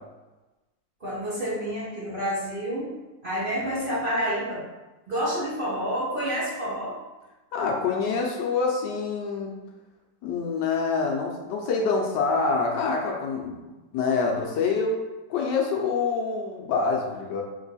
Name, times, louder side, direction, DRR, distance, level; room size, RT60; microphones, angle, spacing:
voice 1, 1.0-2.9 3.2-4.6 5.1-7.0, equal, 35° right, -9 dB, 1.0 m, -28 dB
voice 2, 7.5-9.6 10.2-13.6 13.9-15.0 15.3-17.4, left 4 dB, 75° left, 0 dB, 1.2 m, -26 dB
3.7 x 2.9 x 4.0 m, 1.1 s
omnidirectional pair, 2.0 m